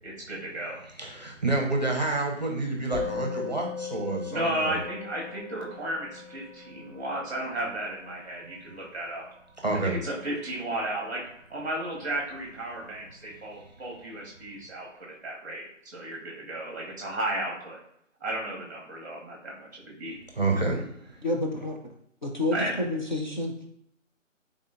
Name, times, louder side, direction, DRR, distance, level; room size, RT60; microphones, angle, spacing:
voice 1, 0.0-0.8 4.3-9.2 9.7-17.8 18.2-20.2 22.5-22.7, right 1 dB, 15° right, -2 dB, 0.9 m, -34 dB
voice 2, 1.0-4.8 9.6-10.0 20.4-20.8, right 2 dB, 35° right, 1 dB, 0.6 m, -28 dB
Musical instrument, 2.9-12.4, left 5 dB, 20° left, 1.2 m, -40 dB
voice 3, 21.2-21.8 22.2-23.5, left 2 dB, 35° left, -1 dB, 0.5 m, -29 dB
3.6 x 3.6 x 2.5 m, 0.75 s
figure-of-eight pair, 165°, 39 cm